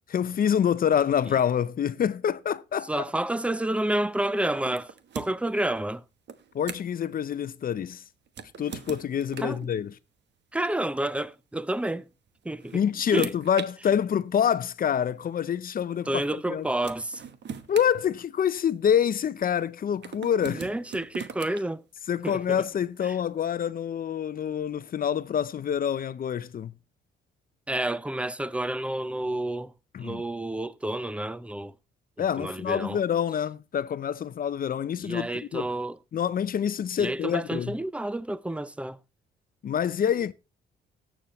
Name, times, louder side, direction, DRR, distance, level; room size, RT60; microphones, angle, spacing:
voice 1, 0.1-3.0 6.5-8.0 8.6-9.9 12.7-16.2 16.5-16.6 17.7-20.6 22.1-26.7 29.9-30.2 32.2-35.7 36.1-37.7 39.6-40.3, left 8 dB, 45° left, 0.6 m, -26 dB
voice 2, 2.9-6.0 9.4-9.7 10.5-12.1 12.4-12.8 13.1-13.3 16.1-17.2 20.5-21.8 22.2-22.6 23.0-23.2 27.7-29.7 30.0-31.7 32.4-33.0 35.0-36.0 37.0-39.0, right 1 dB, 5° right, 0.6 m, -30 dB
sound 1, 4.6-5.5 6.3-7.0 8.3-9.7 10.9-11.1 12.3-13.7 14.7-14.8 16.4-16.5 16.8-18.7 20.0-21.6, right 7 dB, 60° right, 1.1 m, -40 dB
18.0 x 7.2 x 3.1 m
cardioid pair, 90°, 20 cm